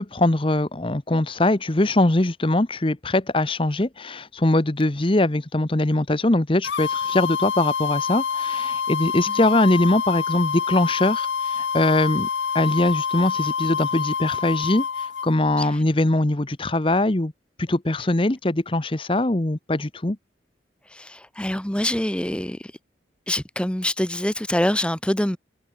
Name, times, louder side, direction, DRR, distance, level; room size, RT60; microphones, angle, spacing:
voice 1, 0.0-12.3 12.5-17.3 17.6-20.2, left 1 dB, 30° left, 1.0 m, -22 dB
sound 1, 6.6-15.3, left 6 dB, 80° left, 0.7 m, -26 dB
voice 2, 21.0-22.6 23.3-25.4, left 1 dB, 5° left, 0.9 m, -25 dB
head